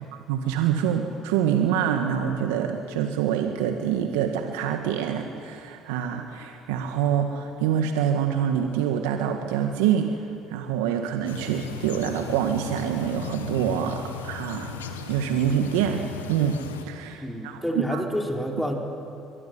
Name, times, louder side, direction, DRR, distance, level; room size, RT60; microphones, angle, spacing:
voice 1, 0.3-14.7 15.1-17.6 17.9-18.0, right 9 dB, 80° right, 4 dB, 1.8 m, -26 dB
sound 1, 11.3-16.9, left 6 dB, 90° left, 1.7 m, -37 dB
voice 2, 17.2-18.7, equal, 5° left, 1 dB, 5.1 m, -28 dB
23.0 x 23.0 x 9.7 m, 2.7 s
hypercardioid pair, 60°, 0 cm